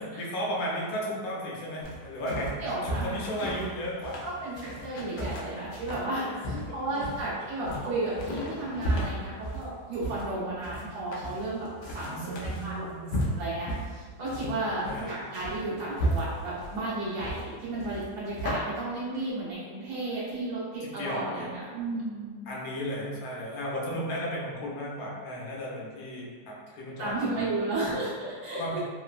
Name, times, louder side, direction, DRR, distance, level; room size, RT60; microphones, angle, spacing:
voice 1, 0.0-2.6 2.8-4.2 4.8-5.4 6.0-7.1 8.1-8.2 8.6-8.7 11.9-13.4 14.6-15.1 20.8-21.6 22.5-27.5 28.6-28.8, equal, 65° left, -4 dB, 1.0 m, -35 dB
sound 1, 1.8-18.5, equal, 85° left, 0.6 m, -35 dB
voice 2, 2.3-3.2 4.2-12.3 12.6-12.8 13.2-22.4 27.0-28.8, right 2 dB, 60° right, -9 dB, 1.0 m, -33 dB
3.1 x 2.0 x 2.4 m, 1.5 s
omnidirectional pair, 1.9 m